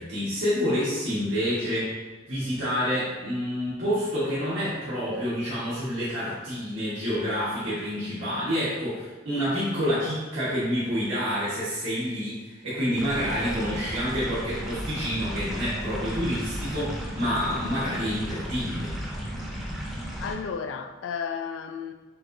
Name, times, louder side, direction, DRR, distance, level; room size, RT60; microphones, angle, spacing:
voice 1, 0.0-2.0 2.3-18.9, equal, 85° right, 1.5 m, -28 dB
sound 1, 13.0-20.4, equal, ahead, 0.7 m, -34 dB
voice 2, 20.0-21.9, left 6 dB, 90° left, 0.3 m, -33 dB
6.7 x 2.6 x 2.6 m
head